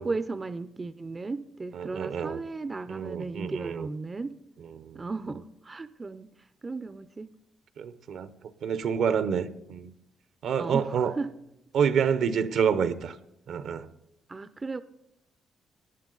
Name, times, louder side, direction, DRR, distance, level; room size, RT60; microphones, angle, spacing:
voice 1, 0.0-4.4 4.9-7.3 10.6-11.3 14.3-14.8, right 3 dB, 25° right, 0.5 m, -35 dB
voice 2, 1.8-2.4 2.9-3.9 4.8-5.0 7.8-8.3 8.6-9.9 10.4-11.1 11.7-13.2 13.5-13.9, right 7 dB, 70° right, 0.7 m, -28 dB
18.5 x 10.5 x 3.9 m
cardioid pair, 90°, 0 cm